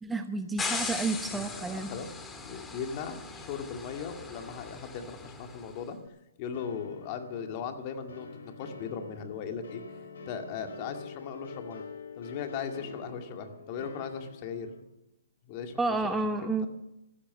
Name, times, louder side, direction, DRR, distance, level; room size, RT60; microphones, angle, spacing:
voice 1, 0.0-1.9 15.8-16.7, right 3 dB, 10° right, 7 dB, 0.9 m, -30 dB
sound 1, 0.6-5.7, left 4 dB, 10° left, 1.8 m, -39 dB
voice 2, 1.2-2.1 2.4-6.0 6.4-9.8 10.3-11.8 12.2-14.7 15.5-16.5, left 6 dB, 35° left, 5 dB, 2.1 m, -38 dB
sound 2, 6.5-14.8, left 4 dB, 70° left, 4.3 m, -46 dB
15.0 x 12.5 x 6.3 m, 0.90 s
hypercardioid pair, 135°, 0 cm